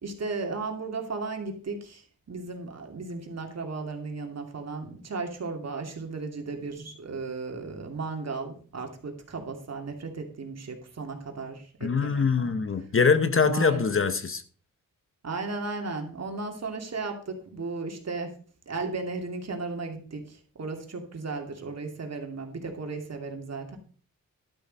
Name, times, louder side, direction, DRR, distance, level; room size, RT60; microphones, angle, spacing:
voice 1, 0.0-12.6 13.4-13.8 15.2-18.3 18.7-23.8, right 3 dB, 50° right, 2.6 m, -35 dB
voice 2, 11.8-14.4, left 5 dB, 40° left, 1.0 m, -23 dB
12.0 x 7.0 x 5.3 m
wide cardioid pair, 105°, 33 cm